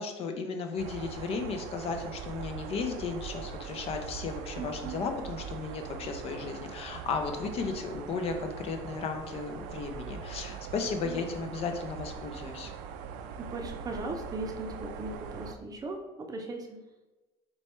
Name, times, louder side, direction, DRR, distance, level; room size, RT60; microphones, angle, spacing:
voice 1, 0.0-12.7, left 4 dB, 45° left, 5 dB, 0.6 m, -35 dB
sound 1, 0.8-15.6, right 7 dB, 75° right, 0.4 m, -42 dB
voice 2, 4.6-5.0 10.8-11.2 13.5-16.8, right 2 dB, 25° right, 3 dB, 0.6 m, -38 dB
4.1 x 2.3 x 4.2 m, 1.1 s
supercardioid pair, 105°, 14 cm